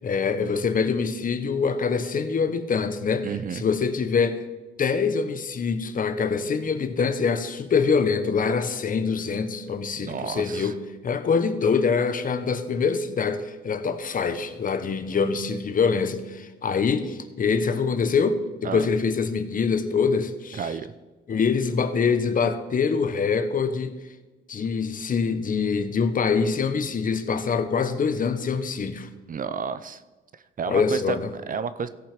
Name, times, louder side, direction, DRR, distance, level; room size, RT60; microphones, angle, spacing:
voice 1, 0.0-4.5 4.8-10.8 11.0-20.6 21.3-23.9 24.5-29.1 30.7-31.3, left 5 dB, 45° left, 10 dB, 1.0 m, -24 dB
voice 2, 3.2-3.6 10.0-10.7 18.6-18.9 20.5-20.9 29.3-30.0 30.3-31.9, right 6 dB, 45° right, 13 dB, 0.6 m, -31 dB
16.0 x 5.7 x 5.1 m, 1.2 s
cardioid pair, 90°, 20 cm